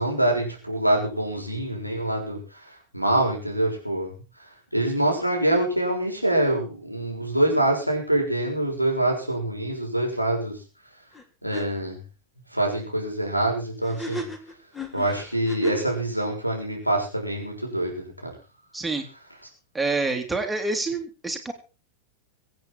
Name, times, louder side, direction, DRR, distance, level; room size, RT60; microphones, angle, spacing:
voice 1, 0.0-2.4 2.9-4.1 4.7-10.6 11.4-12.0 12.5-14.2 14.9-18.3, right 1 dB, 90° left, 2 dB, 6.3 m, -25 dB
sound 1, 11.1-11.2 11.5-11.7 13.8-16.0, equal, 10° left, 3.6 m, -35 dB
voice 2, 18.7-19.0 19.7-21.5, right 3 dB, 5° right, 4 dB, 3.1 m, -27 dB
25.0 x 8.8 x 4.5 m, 0.34 s
figure-of-eight pair, 90°, 0 cm